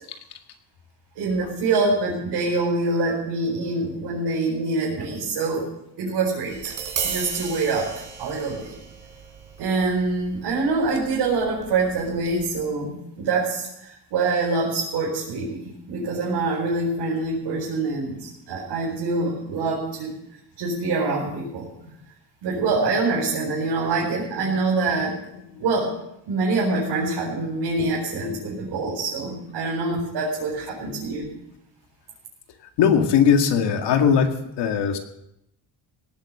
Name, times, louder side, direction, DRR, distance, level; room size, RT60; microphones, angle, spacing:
voice 1, 1.1-5.7 6.0-6.7 7.0-8.7 9.6-20.1 20.6-21.7 22.4-25.1 25.6-25.9 26.2-31.3, right 3 dB, 80° right, -5 dB, 4.9 m, -25 dB
Tap, 6.5-12.6, right 6 dB, 50° right, 4.0 m, -36 dB
voice 2, 32.8-35.0, left 7 dB, 85° left, 5 dB, 2.1 m, -20 dB
18.0 x 9.4 x 6.7 m, 0.82 s
cardioid pair, 135°, 40 cm